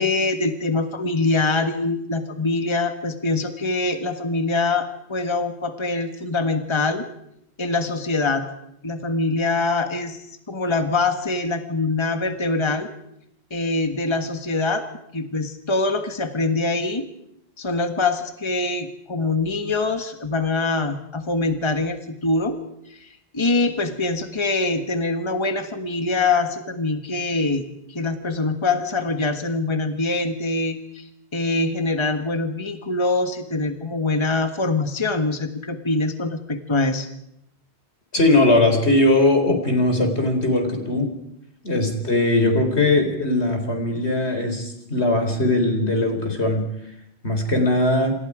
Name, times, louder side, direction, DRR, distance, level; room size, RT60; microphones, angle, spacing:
voice 1, 0.0-7.0 7.6-8.4 8.8-12.9 13.5-14.9 15.1-17.1 17.6-22.6 22.9-27.6 27.9-37.1, left 3 dB, 25° left, 7 dB, 1.5 m, -24 dB
voice 2, 38.1-41.1 41.6-46.6 47.2-48.1, left 2 dB, 80° left, 5 dB, 4.3 m, -20 dB
27.0 x 27.0 x 5.0 m, 0.77 s
omnidirectional pair, 1.1 m